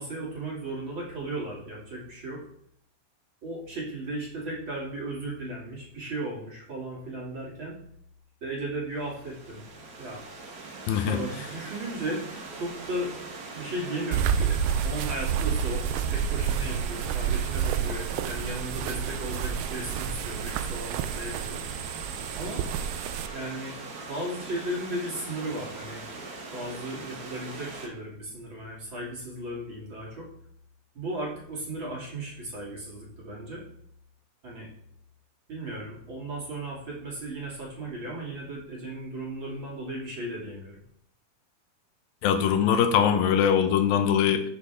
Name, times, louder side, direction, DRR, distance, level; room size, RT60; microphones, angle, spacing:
voice 1, 0.0-2.4 3.4-7.8 8.4-9.6 10.0-10.2 11.1-12.3 12.5-13.1 13.5-14.6 14.8-21.6 22.3-22.6 23.3-23.7 24.1-26.0 26.5-30.3 30.9-33.6 34.4-34.7 35.5-40.8, right 1 dB, 35° right, -5 dB, 3.3 m, -35 dB
Stream / Liquid, 8.9-27.9, right 3 dB, 60° right, 1.0 m, -41 dB
voice 2, 10.9-11.2 42.2-44.4, left 8 dB, 85° left, 7 dB, 2.7 m, -22 dB
sound 1, 14.1-23.3, right 8 dB, 80° right, 2.3 m, -29 dB
13.5 x 7.1 x 3.7 m, 0.70 s
omnidirectional pair, 4.1 m